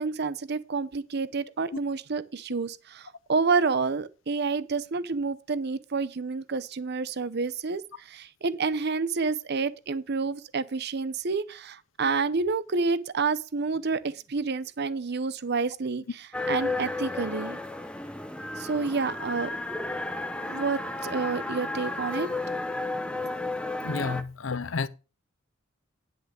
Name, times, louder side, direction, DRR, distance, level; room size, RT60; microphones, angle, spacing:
voice 1, 0.0-17.6 18.6-19.5 20.5-22.3, right 4 dB, 55° right, 0.7 m, -29 dB
sound 1, 16.3-24.2, left 2 dB, 5° left, 0.7 m, -33 dB
voice 2, 23.8-24.9, left 4 dB, 70° left, 0.7 m, -30 dB
10.5 x 6.2 x 5.1 m
head